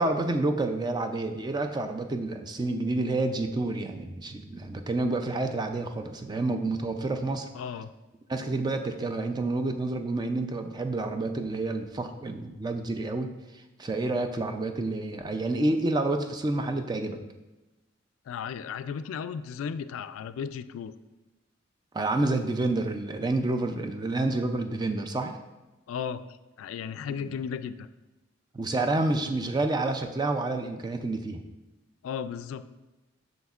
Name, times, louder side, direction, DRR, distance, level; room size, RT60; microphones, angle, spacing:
voice 1, 0.0-7.5 8.3-13.3 13.8-17.2 21.9-25.4 27.2-27.3 28.5-31.4, right 2 dB, 20° right, 6 dB, 0.4 m, -29 dB
voice 2, 7.5-7.9 18.3-20.9 25.9-26.2 26.6-27.9 32.0-32.6, left 7 dB, 85° left, 12 dB, 0.3 m, -35 dB
7.7 x 6.2 x 2.4 m, 1.1 s
head